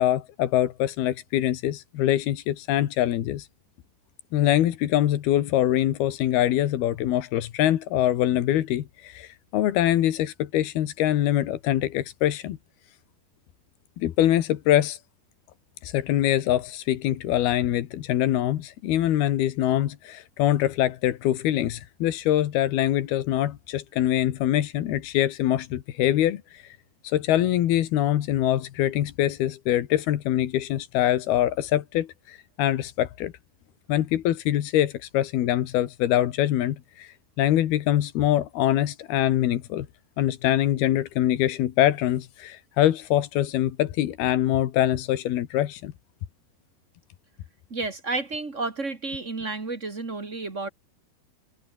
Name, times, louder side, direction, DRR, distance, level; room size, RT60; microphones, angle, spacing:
voice 1, 0.0-3.5 4.3-12.6 14.0-15.0 15.8-26.8 27.0-33.3 33.9-39.9 40.2-45.9, left 12 dB, 90° left, 3.5 m, -24 dB
voice 2, 47.7-50.7, right 3 dB, 25° right, 1.8 m, -31 dB
omnidirectional pair, 4.3 m